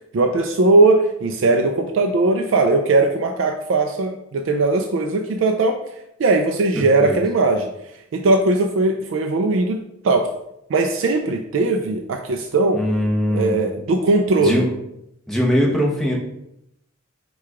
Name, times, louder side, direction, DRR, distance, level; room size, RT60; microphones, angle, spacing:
voice 1, 0.1-5.8 6.2-7.7 8.1-9.8 10.0-10.3 10.7-12.8 13.3-14.6, right 2 dB, 60° right, 4 dB, 0.3 m, -19 dB
voice 2, 6.7-7.2 12.7-13.6 14.4-14.7 15.3-16.2, equal, ahead, -2 dB, 0.8 m, -21 dB
4.6 x 2.3 x 4.7 m, 0.81 s
head